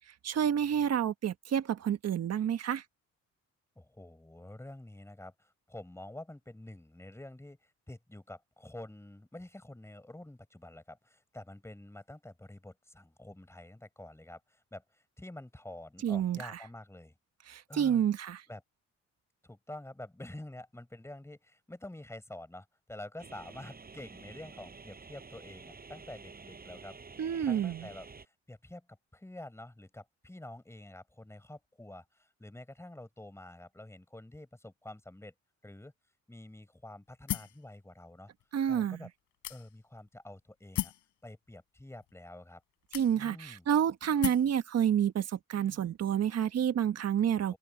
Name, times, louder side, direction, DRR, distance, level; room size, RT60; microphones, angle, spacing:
voice 1, 0.2-2.8 16.0-16.5 17.5-18.4 27.2-27.9 38.5-39.0 42.9-47.6, right 9 dB, 55° right, 1.4 m, -29 dB
voice 2, 3.8-17.1 17.7-18.0 18.5-18.6 19.4-27.0 27.4-28.9 29.1-35.3 35.6-35.9 36.3-38.3 38.7-39.1 39.5-40.9 41.2-42.6 43.1-43.7 47.3-47.6, left 1 dB, 10° left, 4.7 m, -48 dB
sound 1, 23.2-28.3, right 4 dB, 30° right, 5.5 m, -50 dB
sound 2, 37.3-37.6 38.4-38.5 39.4-40.0 40.8-41.1 42.0-42.1 42.9-43.5 44.2-44.5, left 13 dB, 85° left, 4.0 m, -36 dB
open air
cardioid pair, 90°, 30 cm